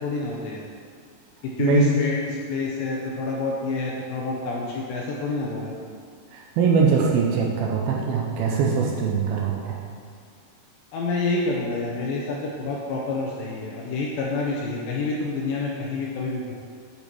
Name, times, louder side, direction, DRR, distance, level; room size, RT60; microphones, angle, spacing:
voice 1, 0.0-0.6 1.6-2.2 2.5-5.7 10.9-16.5, left 3 dB, 80° left, -3 dB, 2.1 m, -28 dB
voice 2, 1.6-2.0 6.3-9.8, right 5 dB, 80° right, -1 dB, 2.3 m, -22 dB
8.5 x 5.4 x 4.6 m, 2.1 s
omnidirectional pair, 4.8 m